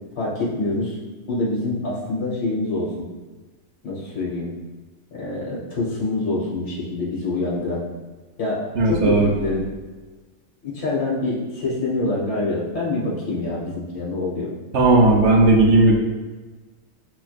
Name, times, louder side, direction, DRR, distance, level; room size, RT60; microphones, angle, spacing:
voice 1, 0.2-1.0 1.3-2.9 3.8-4.5 5.1-7.8 8.4-9.7 10.6-14.5, left 2 dB, 55° left, -6 dB, 1.2 m, -25 dB
voice 2, 8.8-9.3 14.7-16.0, right 2 dB, 65° right, 0 dB, 0.8 m, -15 dB
5.9 x 2.3 x 2.4 m, 1.3 s
omnidirectional pair, 1.4 m